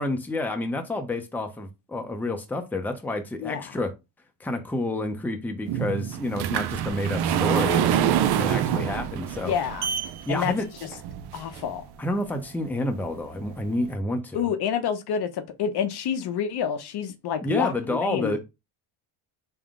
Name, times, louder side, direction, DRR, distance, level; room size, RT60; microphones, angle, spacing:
voice 1, 0.0-3.9 4.4-9.5 10.3-10.7 12.0-14.5 17.4-18.4, left 2 dB, 5° left, 0.6 m, -29 dB
sound 1, 5.7-11.8 12.4-12.5 13.0-13.1 13.4-13.5, right 9 dB, 55° right, 0.5 m, -26 dB
voice 2, 9.4-9.9 10.3-10.5 10.8-10.9 11.3-11.9 14.3-18.3, left 8 dB, 55° left, 0.7 m, -28 dB
3.6 x 2.1 x 3.6 m
supercardioid pair, 75°, 47 cm